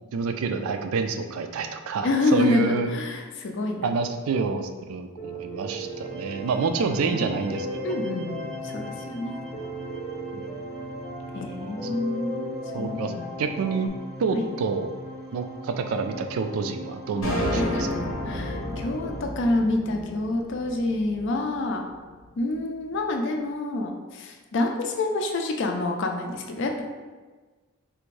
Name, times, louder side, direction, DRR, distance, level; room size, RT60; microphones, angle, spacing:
voice 1, 0.1-2.9 3.8-8.0 10.3-10.5 12.7-13.1 13.4-13.9 14.2-14.9 15.3-17.9, right 4 dB, 85° right, 7 dB, 0.3 m, -28 dB
voice 2, 2.0-3.9 6.6-7.4 7.8-9.3 11.3-13.3 14.3-14.5 17.6-17.9 18.3-21.9 22.4-26.8, left 2 dB, 60° left, 3 dB, 0.4 m, -27 dB
Piano, 5.2-13.9, equal, 20° left, 0.7 m, -37 dB
sound 1, 5.6-19.2, equal, 15° right, 0.5 m, -41 dB
sound 2, 17.2-21.6, left 1 dB, 80° left, 0.8 m, -31 dB
3.4 x 2.5 x 3.1 m, 1.4 s
head